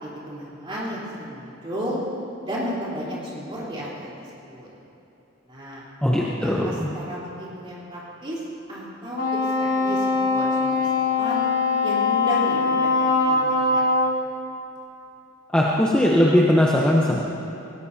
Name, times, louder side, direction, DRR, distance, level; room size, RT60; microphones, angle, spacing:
voice 1, 0.0-2.0 2.4-4.1 4.4-4.7 5.5-5.8 6.1-8.4 8.7-9.2 9.6-11.4 11.8-12.9 13.3-13.8, equal, 25° right, -7 dB, 3.9 m, -33 dB
voice 2, 6.0-6.9 15.5-17.2, left 1 dB, 5° left, -4 dB, 0.9 m, -19 dB
Wind instrument woodwind instrument, 9.1-14.2, left 3 dB, 85° left, 2.8 m, -22 dB
19.0 x 17.0 x 2.8 m, 3.0 s
head